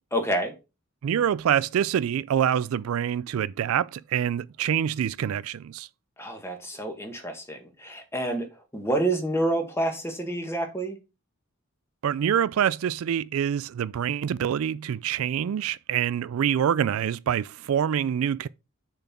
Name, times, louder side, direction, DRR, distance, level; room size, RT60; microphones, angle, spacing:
voice 1, 0.1-0.5 6.2-8.5 8.7-11.0, right 1 dB, 10° left, 1.5 m, -28 dB
voice 2, 1.0-5.9 12.0-18.5, right 9 dB, 75° right, 0.3 m, -26 dB
6.6 x 4.2 x 5.9 m
head